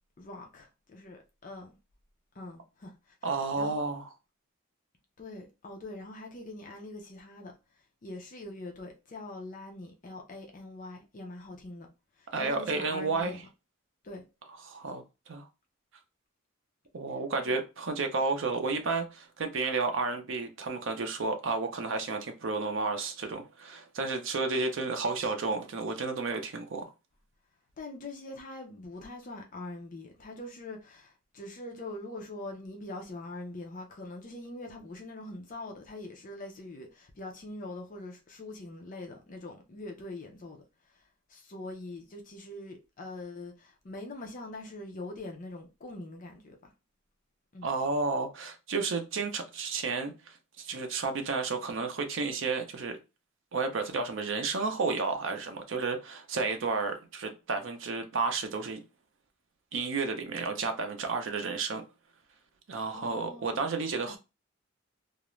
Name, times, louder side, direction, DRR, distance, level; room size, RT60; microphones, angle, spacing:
voice 1, 0.2-1.8 2.3-3.1 3.5-3.9 5.2-7.5 8.0-11.9 12.2-13.4 14.0-14.3 27.8-41.0 41.3-46.7 47.5-47.7 62.9-63.7 64.1-64.2, left 2 dB, 40° left, 0.4 m, -43 dB
voice 2, 3.2-4.1 12.3-13.4 14.6-15.5 16.9-26.9 47.6-53.0 53.5-58.8 59.7-61.8 62.7-64.2, right 4 dB, 60° right, 0.5 m, -32 dB
2.4 x 2.0 x 3.0 m
head